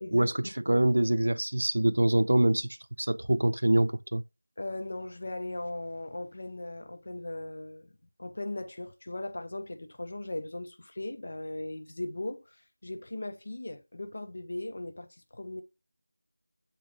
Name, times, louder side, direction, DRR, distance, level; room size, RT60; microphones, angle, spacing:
voice 1, 0.0-0.5 4.6-7.9 8.2-12.6 12.8-15.6, left 2 dB, 40° left, 0.6 m, -38 dB
voice 2, 0.7-2.7 3.0-4.2, right 1 dB, 65° right, 0.3 m, -24 dB
7.6 x 4.1 x 3.0 m
figure-of-eight pair, 180°, 0 cm